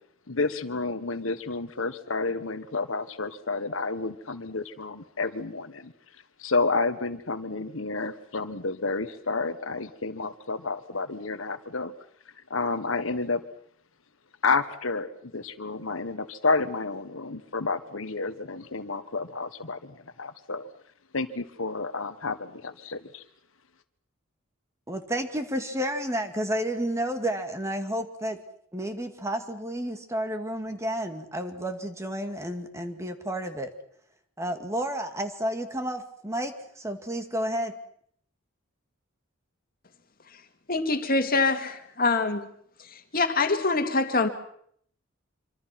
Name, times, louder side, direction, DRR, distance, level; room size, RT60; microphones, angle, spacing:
voice 1, 0.3-5.9 6.4-11.9 12.5-13.4 14.4-20.7 21.1-23.2, left 3 dB, 85° left, 10 dB, 1.5 m, -30 dB
voice 2, 24.9-28.4 28.7-33.7 34.4-37.7, equal, 15° right, 6 dB, 2.2 m, -31 dB
voice 3, 40.7-42.5 42.9-44.3, left 3 dB, 45° left, 7 dB, 2.3 m, -25 dB
26.0 x 25.5 x 6.0 m, 0.65 s
head